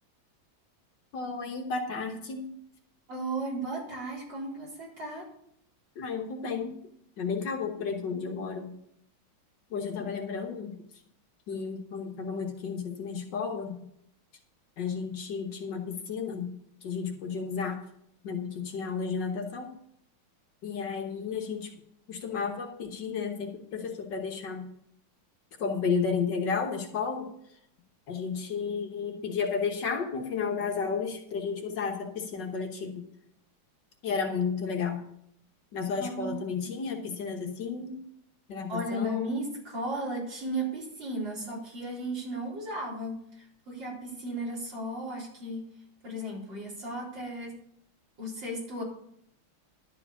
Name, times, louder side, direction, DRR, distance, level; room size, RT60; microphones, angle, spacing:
voice 1, 1.1-2.5 6.0-6.8 7.2-8.7 9.7-10.8 11.5-13.7 14.8-16.5 16.8-17.8 18.2-19.7 20.6-21.7 22.1-24.7 25.6-27.3 28.1-33.0 34.0-35.0 35.7-38.0 38.5-39.2, left 5 dB, 60° left, 3 dB, 1.8 m, -32 dB
voice 2, 3.1-5.3 36.0-36.8 38.7-45.6 46.0-47.5 48.2-48.8, right 1 dB, 65° right, -5 dB, 4.8 m, -35 dB
12.0 x 4.9 x 8.3 m, 0.72 s
omnidirectional pair, 2.2 m